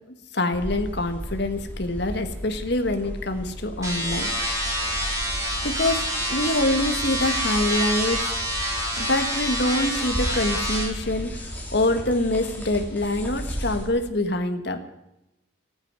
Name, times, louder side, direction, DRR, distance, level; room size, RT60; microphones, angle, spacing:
voice 1, 0.3-4.6 5.6-8.3 9.0-14.8, left 1 dB, 55° left, 7 dB, 1.5 m, -25 dB
sound 1, 0.5-13.9, equal, 10° left, 2.8 m, -35 dB
sound 2, 3.8-10.8, equal, 15° right, 4.8 m, -27 dB
15.0 x 9.0 x 9.5 m, 0.90 s
head